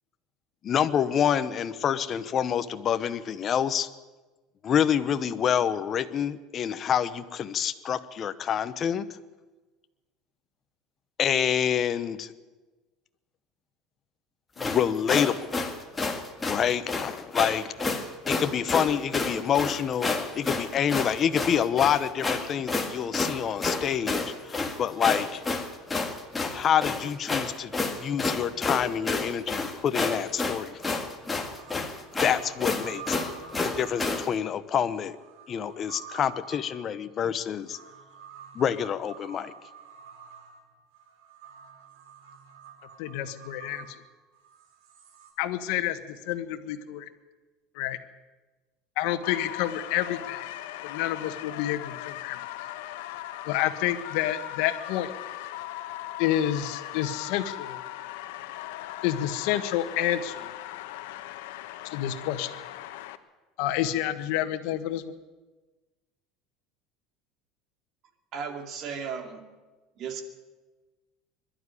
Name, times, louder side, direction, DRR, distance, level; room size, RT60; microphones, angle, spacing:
voice 1, 0.6-3.9 4.6-9.1 11.2-12.3 14.6-15.5 16.5-17.7 18.3-25.4 26.5-27.7 28.0-31.0 32.2-33.2 33.6-35.2 35.5-37.8 38.5-39.5, left 8 dB, 30° left, 11 dB, 0.9 m, -27 dB
sound 1, 14.6-34.3, left 3 dB, 10° left, 1.8 m, -30 dB
sound 2, 30.8-30.9 31.4-45.3, right 6 dB, 75° right, 4.3 m, -48 dB
voice 2, 43.0-43.8 45.4-47.1 47.7-48.0 49.0-50.5 50.8-52.4 53.4-55.1 56.2-57.8 59.0-60.5 61.9-62.5 63.6-65.0, left 12 dB, 70° left, 8 dB, 1.5 m, -29 dB
sound 3, 49.2-63.2, left 14 dB, 90° left, 1.1 m, -39 dB
voice 3, 68.3-69.6 70.0-70.2, right 6 dB, 45° right, 6 dB, 2.4 m, -35 dB
21.5 x 12.0 x 9.9 m, 1.2 s
cardioid pair, 150°, 0 cm